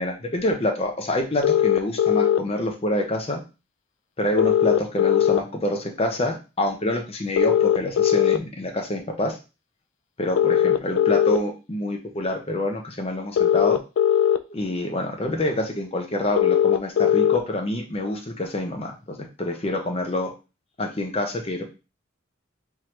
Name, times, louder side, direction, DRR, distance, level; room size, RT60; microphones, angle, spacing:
voice 1, 0.0-3.4 4.2-9.4 10.2-13.8 14.5-18.9 19.4-20.3 20.8-21.6, left 1 dB, 30° left, 3 dB, 0.6 m, -27 dB
sound 1, 1.4-2.4 4.4-5.4 7.4-8.4 10.4-11.4 13.4-14.4 16.4-17.4, left 10 dB, 65° left, 0.3 m, -19 dB
3.6 x 3.1 x 3.1 m, 0.30 s
head